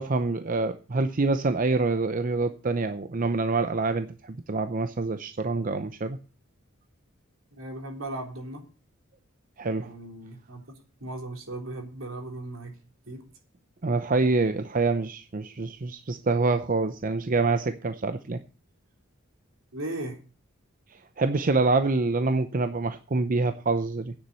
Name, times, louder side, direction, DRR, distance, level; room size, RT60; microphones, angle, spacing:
voice 1, 0.0-6.2 9.6-9.9 13.8-18.4 20.9-24.1, right 3 dB, 40° right, 0.6 m, -26 dB
voice 2, 7.5-8.6 9.8-10.6 11.0-12.7 13.1-13.2 19.7-20.2, right 1 dB, 70° right, 3.6 m, -37 dB
9.6 x 7.1 x 8.3 m
head